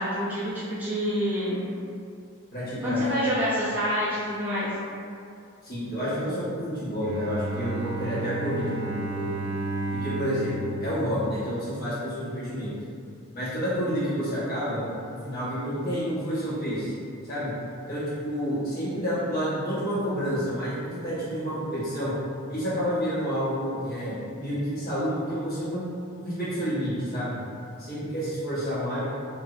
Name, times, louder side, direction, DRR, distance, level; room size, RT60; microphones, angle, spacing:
voice 1, 0.0-1.6 2.8-4.7, equal, 10° right, -10 dB, 0.4 m, -27 dB
voice 2, 2.5-3.1 5.6-9.3 9.9-12.7 13.3-14.8 15.1-16.9 17.2-17.5 17.9-22.1 22.5-25.9 26.2-27.4 27.8-29.0, equal, 45° left, -11 dB, 1.1 m, -29 dB
Bowed string instrument, 7.0-12.0, right 2 dB, 50° right, 0.7 m, -33 dB
3.0 x 2.5 x 2.4 m, 2.4 s
head